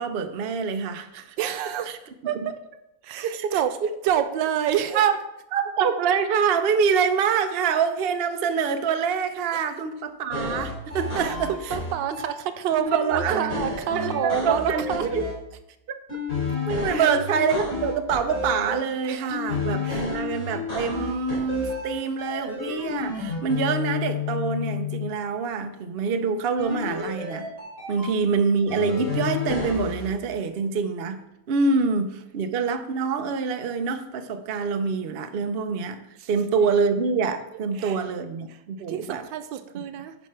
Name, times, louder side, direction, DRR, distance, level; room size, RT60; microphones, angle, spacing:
voice 1, 0.0-1.4 1.9-2.0 3.2-3.5 4.9-5.2 5.5-11.8 12.9-13.4 13.9-15.3 16.7-27.5 27.9-36.0 36.3-39.2, right 5 dB, 60° right, 8 dB, 0.6 m, -25 dB
voice 2, 1.4-1.9 2.2-2.4 3.0-3.7 4.0-5.1 9.5-9.6 11.1-15.1 16.9-17.2 19.0-19.4 19.8-20.1 36.2-36.3 37.7-38.0 38.9-40.2, right 10 dB, 80° right, 10 dB, 1.4 m, -28 dB
sound 1, 10.3-12.3 12.7-15.3 16.1-18.7 19.3-21.9 22.2-25.1 26.6-28.1 28.7-30.1, left 4 dB, 40° left, 4.5 m, -30 dB
10.5 x 5.4 x 4.7 m, 0.85 s
omnidirectional pair, 2.0 m